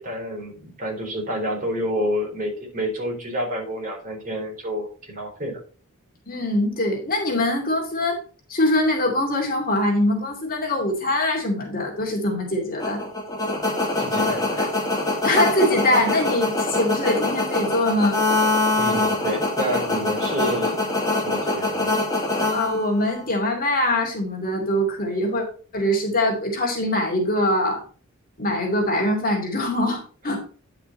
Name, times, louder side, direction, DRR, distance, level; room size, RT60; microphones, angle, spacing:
voice 1, 0.0-5.6 14.0-14.7 18.8-20.8 21.2-21.9, equal, 40° right, -1 dB, 4.0 m, -29 dB
voice 2, 6.3-8.2 8.5-13.0 15.2-18.2 22.5-25.4 25.7-27.8 28.4-30.4, left 1 dB, 40° left, 1 dB, 2.6 m, -23 dB
sound 1, 12.8-23.2, left 2 dB, 20° left, 2.1 m, -24 dB
10.0 x 5.9 x 4.2 m, 0.39 s
head